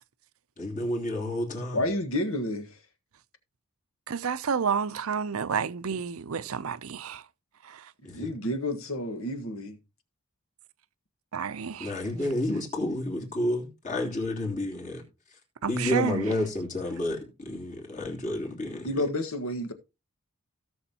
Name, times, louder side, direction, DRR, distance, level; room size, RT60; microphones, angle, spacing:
voice 1, 0.6-1.8 8.0-8.3 11.8-15.0 15.7-19.0, left 1 dB, 35° left, 3.1 m, -30 dB
voice 2, 1.7-2.7 8.1-9.8 18.8-19.7, left 1 dB, 70° left, 1.5 m, -30 dB
voice 3, 4.1-7.2 7.6-7.9 11.3-11.9 15.6-16.2, right 6 dB, 75° right, 0.6 m, -30 dB
17.0 x 6.4 x 2.9 m
head